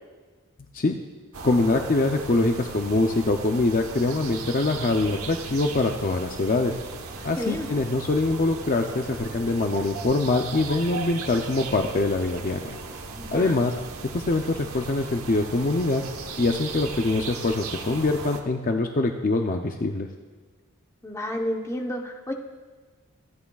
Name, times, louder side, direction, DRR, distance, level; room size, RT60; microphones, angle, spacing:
sound 1, 1.3-18.4, right 4 dB, 75° right, 1.1 m, -37 dB
voice 1, 1.4-6.7 7.2-12.8 13.3-13.7 14.1-16.0 16.4-20.1, left 2 dB, 40° left, 4 dB, 0.5 m, -24 dB
voice 2, 7.4-7.7 13.2-13.5 21.0-22.3, left 1 dB, 15° left, 2 dB, 0.9 m, -30 dB
25.0 x 9.5 x 2.3 m, 1.4 s
head